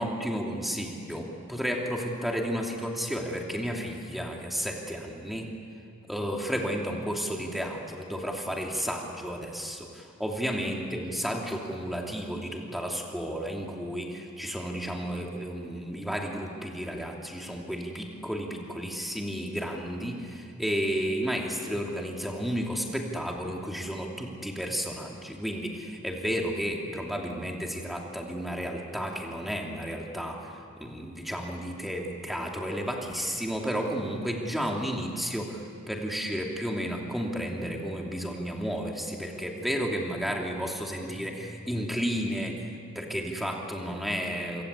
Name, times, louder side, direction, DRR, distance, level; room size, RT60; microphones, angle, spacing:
voice 1, 0.0-5.5 6.1-42.7 42.9-44.6, equal, ahead, 0 dB, 2.8 m, -32 dB
26.5 x 25.0 x 8.2 m, 2.4 s
head